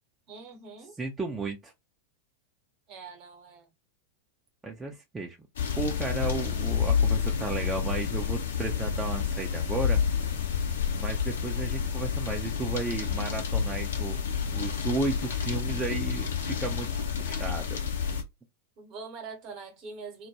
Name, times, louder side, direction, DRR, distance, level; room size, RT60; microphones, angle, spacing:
voice 1, 0.3-0.9 2.9-3.7 18.8-20.3, right 4 dB, 40° right, 0.9 m, -43 dB
voice 2, 1.0-1.7 4.6-5.4 5.8-10.0 10.9-14.2 14.5-16.9 17.2-17.8, right 3 dB, 10° right, 0.5 m, -34 dB
sound 1, 5.6-18.2, left 7 dB, 65° left, 0.6 m, -29 dB
2.2 x 2.1 x 2.7 m
figure-of-eight pair, 90°, 0 cm